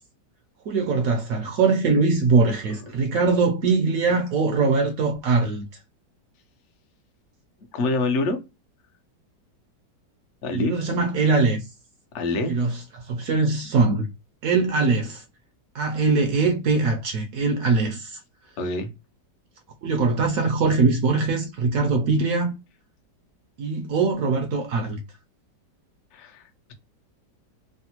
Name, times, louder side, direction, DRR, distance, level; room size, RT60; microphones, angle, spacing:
voice 1, 0.7-5.7 10.5-11.7 12.5-14.1 14.4-15.2 15.7-18.2 19.8-22.6 23.6-25.0, right 4 dB, 70° right, 0.8 m, -22 dB
voice 2, 7.7-8.4 10.4-10.7 12.1-12.5 18.6-18.9 26.1-26.7, left 2 dB, 60° left, 0.8 m, -26 dB
3.3 x 2.0 x 2.8 m
omnidirectional pair, 1.9 m